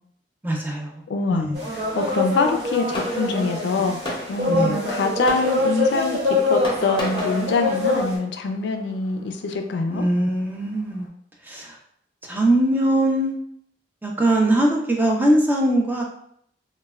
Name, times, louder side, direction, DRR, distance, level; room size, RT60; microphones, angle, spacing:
voice 1, 0.4-0.9 1.3-1.6 4.5-4.8 9.9-11.1 11.4-11.8 12.2-13.3 14.0-16.0, right 1 dB, 10° right, 0 dB, 0.4 m, -21 dB
voice 2, 1.1-4.0 4.3-10.1, left 3 dB, 75° left, 5 dB, 0.3 m, -24 dB
sound 1, 1.5-8.2, left 2 dB, 70° right, 0.7 m, -24 dB
Fireworks, 1.7-11.1, left 1 dB, 30° left, 0.6 m, -38 dB
3.2 x 2.1 x 2.2 m, 0.68 s
head